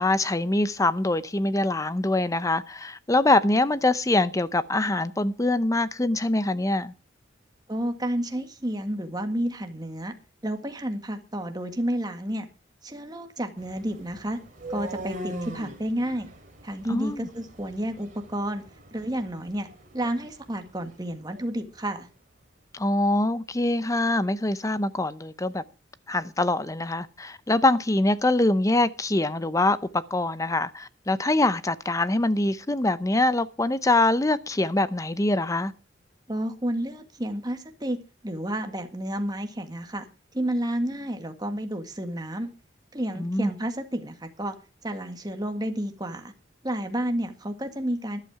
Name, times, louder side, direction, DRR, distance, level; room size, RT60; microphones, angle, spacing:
voice 1, 0.0-6.9 16.9-17.3 22.7-25.6 26.1-35.7 43.2-43.5, left 2 dB, 15° left, 0.6 m, -24 dB
voice 2, 7.7-10.1 10.4-12.5 12.8-14.4 14.7-16.3 16.6-18.6 18.9-19.7 19.9-22.1 36.3-38.0 38.2-40.1 40.3-42.5 42.9-44.6 44.8-46.3 46.6-48.2, right 1 dB, 20° right, 1.7 m, -30 dB
sound 1, 13.6-21.5, right 1 dB, 45° right, 3.1 m, -42 dB
13.0 x 11.5 x 4.8 m
head